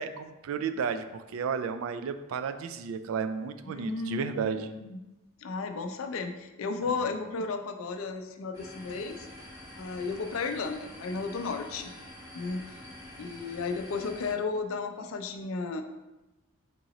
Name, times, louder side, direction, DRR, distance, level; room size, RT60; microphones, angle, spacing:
voice 1, 0.0-4.7, right 6 dB, 80° right, 10 dB, 0.3 m, -33 dB
voice 2, 3.7-5.0 5.4-9.2 9.8-11.9 12.3-12.6 13.2-15.8, left 4 dB, 80° left, 7 dB, 0.4 m, -34 dB
sound 1, 8.5-14.3, left 1 dB, 15° right, 1.1 m, -47 dB
3.8 x 2.9 x 3.9 m, 1.0 s
head